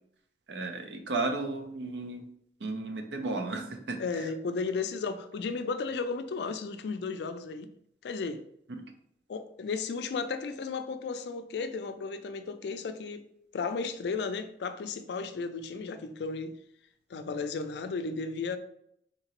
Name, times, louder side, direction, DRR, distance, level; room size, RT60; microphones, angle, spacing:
voice 1, 0.5-2.2 2.6-4.0, right 3 dB, 85° right, 0.6 m, -33 dB
voice 2, 4.0-7.7 8.0-8.4 9.3-13.2 13.5-16.5 17.1-18.6, left 4 dB, 75° left, 0.3 m, -34 dB
3.9 x 2.8 x 2.9 m
head